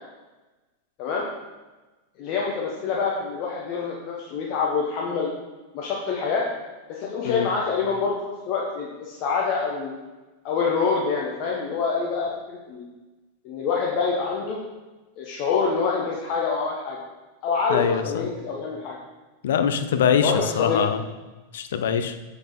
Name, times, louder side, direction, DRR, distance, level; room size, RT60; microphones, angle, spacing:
voice 1, 2.2-5.3 5.7-6.4 6.9-9.9 10.4-12.8 13.4-14.6 15.2-17.0 17.4-19.0 20.2-20.8, left 5 dB, 40° left, -2 dB, 1.3 m, -26 dB
voice 2, 17.7-18.2 19.4-21.0 21.5-22.1, left 7 dB, 60° left, 9 dB, 0.6 m, -23 dB
7.5 x 6.4 x 4.3 m, 1.2 s
figure-of-eight pair, 90°, 0 cm